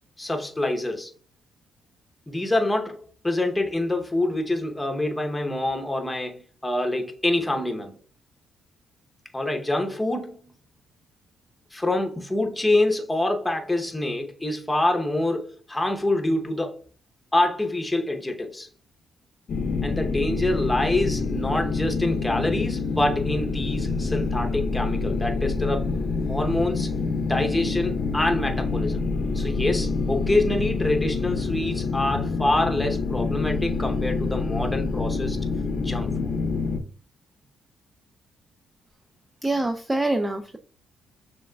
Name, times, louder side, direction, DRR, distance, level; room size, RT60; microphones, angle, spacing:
voice 1, 0.2-1.1 2.3-8.0 9.3-10.4 11.7-16.8 17.3-18.7 19.8-25.9 26.3-26.9 27.3-29.0 29.3-35.4 35.8-36.3, left 1 dB, 10° left, 0.8 m, -26 dB
sound 1, 19.5-36.8, left 4 dB, 65° left, 0.6 m, -27 dB
voice 2, 39.4-40.6, right 2 dB, 15° right, 0.4 m, -25 dB
6.2 x 3.3 x 2.2 m
cardioid pair, 90°, 0 cm